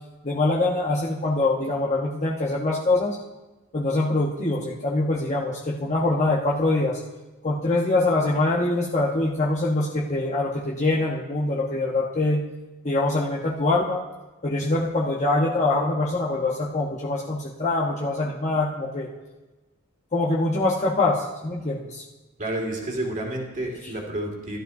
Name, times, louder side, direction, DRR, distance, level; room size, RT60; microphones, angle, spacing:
voice 1, 0.2-3.2 3.7-7.0 7.4-12.4 12.8-14.0 14.4-19.1 20.1-22.0, left 2 dB, 35° left, -5 dB, 1.0 m, -24 dB
voice 2, 22.4-24.6, right 1 dB, 35° right, 0 dB, 2.1 m, -30 dB
14.5 x 12.0 x 2.7 m, 1.1 s
head